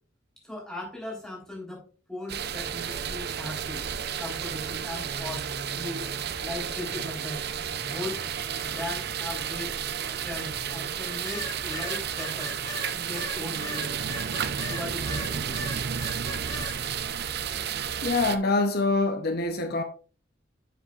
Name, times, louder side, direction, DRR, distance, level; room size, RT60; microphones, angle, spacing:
voice 1, 0.4-3.9 4.2-6.1 6.4-7.5 7.8-8.2 8.6-9.8 10.1-12.6 12.9-14.0 14.7-15.6, left 1 dB, 5° left, 3.6 m, -38 dB
sound 1, 2.3-18.4, right 8 dB, 55° right, 0.6 m, -32 dB
sound 2, 5.0-10.9, right 1 dB, 35° right, 3.6 m, -45 dB
sound 3, 11.2-15.3 15.5-16.7, left 1 dB, 20° left, 2.9 m, -37 dB
voice 2, 18.0-19.8, left 3 dB, 55° left, 0.8 m, -25 dB
10.5 x 7.3 x 2.4 m
head